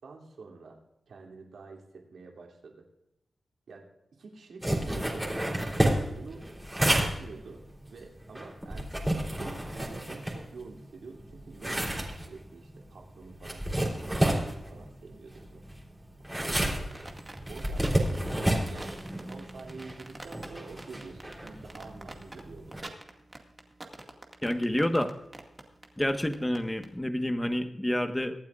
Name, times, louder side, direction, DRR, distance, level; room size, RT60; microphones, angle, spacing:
voice 1, 0.0-0.8 1.1-2.8 3.7-3.9 4.2-5.3 6.1-7.6 7.9-15.6 16.4-16.9 17.5-23.0, right 4 dB, 85° right, 1 dB, 2.8 m, -48 dB
sound 1, 4.6-10.8 11.2-22.8, right 1 dB, 10° right, 3.5 m, -31 dB
sound 2, 16.9-26.9, right 2 dB, 30° right, 2.1 m, -45 dB
voice 2, 24.4-25.1 26.0-28.3, left 1 dB, 15° left, 7 dB, 1.4 m, -28 dB
24.0 x 8.9 x 2.5 m, 0.89 s
cardioid pair, 60°, 0 cm